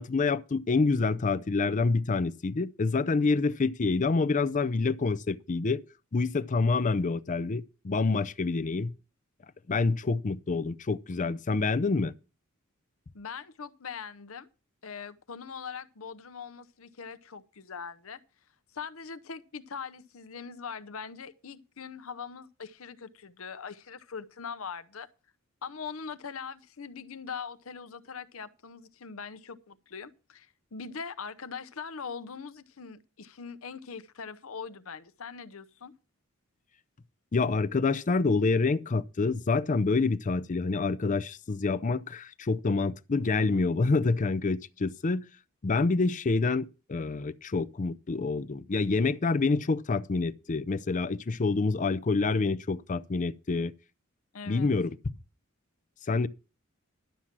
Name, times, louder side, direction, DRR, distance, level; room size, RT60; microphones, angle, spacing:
voice 1, 0.0-5.8 6.1-8.9 9.7-12.1 37.3-45.3 45.6-53.7 54.5-55.0 56.1-56.3, left 3 dB, 35° left, 0.5 m, -27 dB
voice 2, 13.1-14.5 14.8-18.2 18.7-25.1 25.6-35.9 54.3-54.7, left 6 dB, 75° left, 0.8 m, -41 dB
11.5 x 7.3 x 6.0 m
head